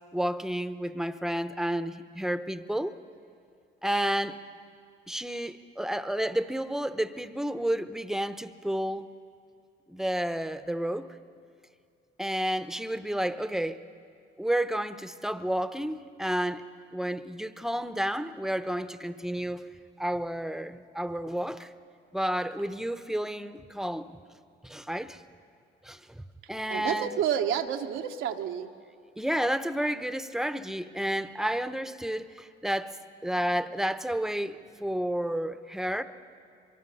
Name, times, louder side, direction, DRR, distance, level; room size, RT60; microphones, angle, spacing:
voice 1, 0.1-2.9 3.8-4.4 5.1-9.1 9.9-11.1 12.2-13.8 14.4-16.6 16.9-19.6 20.0-21.7 22.1-24.2 24.6-25.2 25.8-26.2 26.5-27.2 29.2-33.0 33.2-36.0, right 1 dB, ahead, 11 dB, 0.8 m, -31 dB
voice 2, 26.7-28.7, right 9 dB, 85° right, 5 dB, 1.1 m, -29 dB
23.5 x 23.0 x 5.5 m, 2.3 s
cardioid pair, 90°, 20 cm